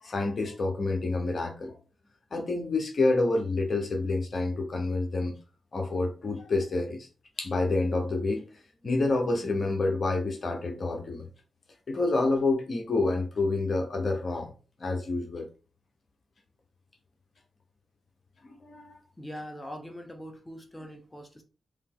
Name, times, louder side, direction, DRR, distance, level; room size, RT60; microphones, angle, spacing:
voice 1, 0.0-1.7 2.3-5.3 5.7-7.1 7.4-8.5 8.8-11.3 11.9-14.5 14.8-15.5 18.4-19.0, left 2 dB, 55° left, 4 dB, 1.0 m, -28 dB
voice 2, 19.2-21.4, equal, 15° left, 4 dB, 1.0 m, -42 dB
3.4 x 2.9 x 3.7 m, 0.36 s
cardioid pair, 50°, 0 cm